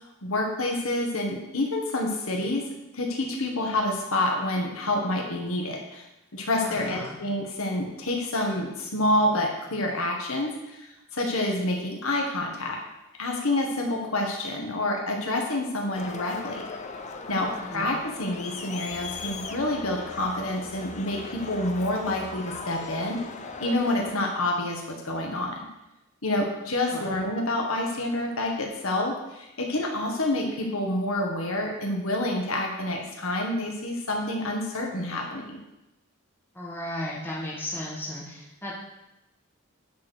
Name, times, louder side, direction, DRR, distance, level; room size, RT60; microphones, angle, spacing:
voice 1, 0.2-2.7 2.9-6.1 6.3-12.8 13.2-16.6 17.3-23.2 23.6-25.6 26.2-35.6, left 1 dB, 80° left, 0 dB, 1.8 m, -28 dB
voice 2, 6.6-7.1 17.5-17.9 26.9-27.1 36.5-38.7, left 1 dB, 10° left, -5 dB, 2.2 m, -35 dB
Crowd, 16.0-24.1, left 4 dB, 35° left, 0.7 m, -38 dB
9.4 x 4.9 x 6.4 m, 0.92 s
head